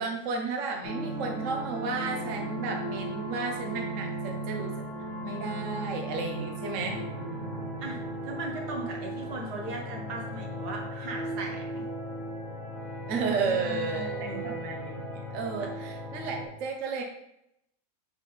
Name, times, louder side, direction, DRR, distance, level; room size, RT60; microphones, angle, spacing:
voice 1, 0.0-4.7 5.2-7.0 13.1-17.0, right 4 dB, 55° right, 2 dB, 1.1 m, -33 dB
sound 1, 0.8-16.5, right 1 dB, 45° left, 1.8 m, -36 dB
voice 2, 7.8-11.8 13.3-14.5 15.6-15.7, right 2 dB, 75° right, 0 dB, 1.8 m, -38 dB
8.3 x 4.1 x 3.4 m, 0.80 s
omnidirectional pair, 1.7 m